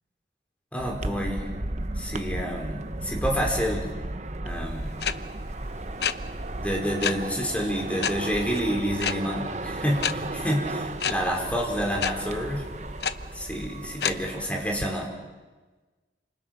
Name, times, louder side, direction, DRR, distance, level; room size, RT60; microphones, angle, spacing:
voice 1, 0.7-1.5 2.0-3.9 4.4-5.0 6.6-12.6 13.3-15.1, equal, 10° left, 0 dB, 4.9 m, -28 dB
Avió Karima i Loli, 0.8-14.9, right 2 dB, 40° right, 1.0 m, -34 dB
sound 1, 5.0-5.1 6.0-6.1 7.0-7.1 8.0-8.1 9.0-9.1 10.0-10.1 11.0-11.1 12.0-12.1 13.0-13.1 14.0-14.1, left 7 dB, 65° left, 0.9 m, -25 dB
29.5 x 27.5 x 6.0 m, 1.3 s
head